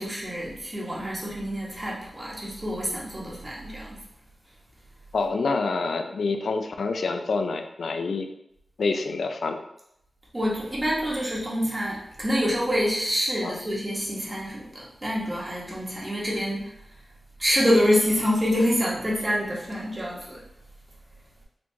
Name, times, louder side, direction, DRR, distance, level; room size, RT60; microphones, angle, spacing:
voice 1, 0.0-3.9 10.3-16.7 17.4-20.4, equal, 25° right, -5 dB, 1.3 m, -26 dB
voice 2, 5.1-8.3 8.8-9.6 13.4-13.6, left 4 dB, 90° left, 6 dB, 0.4 m, -27 dB
4.1 x 2.9 x 2.8 m, 0.77 s
wide cardioid pair, 70°, 0 cm